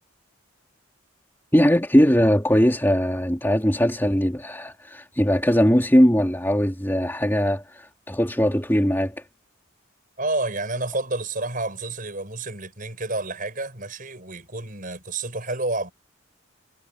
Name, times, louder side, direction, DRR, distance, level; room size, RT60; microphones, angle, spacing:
voice 1, 1.5-9.1, equal, 10° left, 3.2 m, -20 dB
voice 2, 10.2-15.9, right 2 dB, 40° right, 6.8 m, -29 dB
head